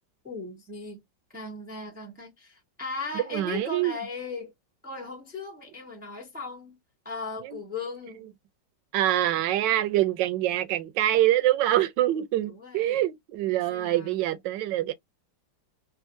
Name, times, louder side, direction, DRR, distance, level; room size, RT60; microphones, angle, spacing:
voice 1, 0.2-1.0 1.3-4.5 4.8-6.8 7.0-8.3 12.4-13.0 13.5-14.2, left 3 dB, 5° right, 0.8 m, -38 dB
voice 2, 3.1-4.0 7.4-7.6 8.9-14.9, right 13 dB, 75° right, 1.2 m, -25 dB
3.6 x 2.5 x 2.6 m
omnidirectional pair, 2.0 m